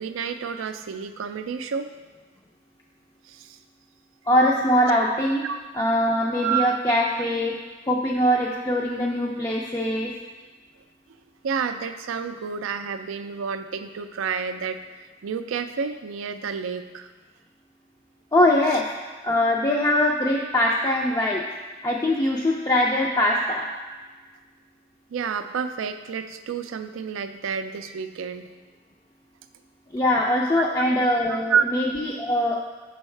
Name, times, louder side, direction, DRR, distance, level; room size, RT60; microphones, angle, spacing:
voice 1, 0.0-1.9 3.3-3.6 5.4-5.6 6.4-6.8 11.4-14.8 15.2-17.1 25.1-28.5 30.6-30.7 31.3-31.7, right 6 dB, 70° right, 9 dB, 0.4 m, -29 dB
voice 2, 4.3-5.4 5.7-7.5 7.9-10.1 18.3-18.8 19.2-21.4 21.8-23.7 29.9-32.6, left 1 dB, 20° left, -3 dB, 0.4 m, -22 dB
6.2 x 5.4 x 3.2 m, 1.4 s
head